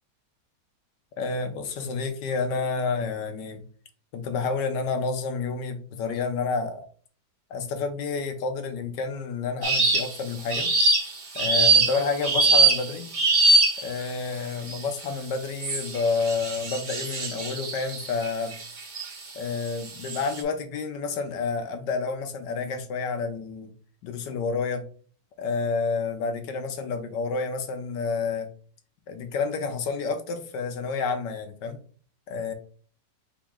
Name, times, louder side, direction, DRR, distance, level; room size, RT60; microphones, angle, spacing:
voice 1, 1.2-3.6 4.1-6.9 7.5-10.7 11.3-13.1 13.8-18.6 19.3-23.7 24.0-24.8 25.4-28.5 29.1-31.8 32.3-32.5, left 4 dB, 80° left, 7 dB, 1.4 m, -29 dB
sound 1, 9.6-10.2 10.5-14.0 14.7-15.0 15.6-19.1 19.7-20.4, right 3 dB, 55° right, 0.5 m, -23 dB
4.6 x 3.1 x 3.6 m, 0.43 s
omnidirectional pair, 1.9 m